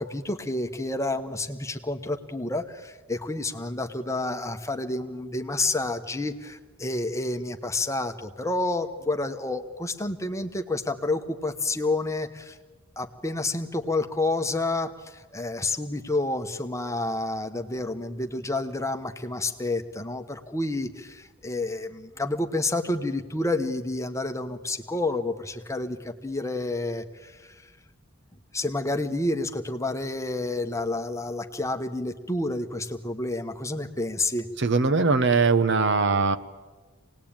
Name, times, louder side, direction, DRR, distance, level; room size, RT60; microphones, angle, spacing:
voice 1, 0.0-12.6 13.0-27.5 28.5-34.5, left 2 dB, 15° left, 6 dB, 1.1 m, -29 dB
voice 2, 34.6-36.4, right 4 dB, 55° right, 9 dB, 0.9 m, -21 dB
25.5 x 19.0 x 8.8 m, 1.4 s
head